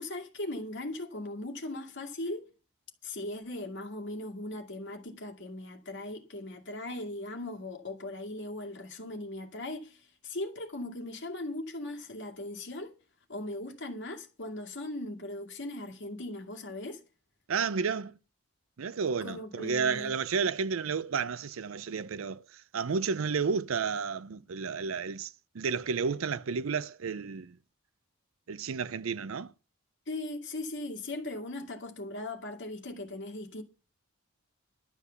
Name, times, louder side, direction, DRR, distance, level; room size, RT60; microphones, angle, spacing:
voice 1, 0.0-2.5 3.0-12.9 13.3-17.0 19.2-20.1 30.1-33.6, left 2 dB, 55° left, 2.2 m, -39 dB
voice 2, 17.5-18.2 18.8-22.4 22.7-25.3 25.5-27.5 28.5-29.5, right 5 dB, 65° right, 0.5 m, -31 dB
12.0 x 8.2 x 7.0 m
head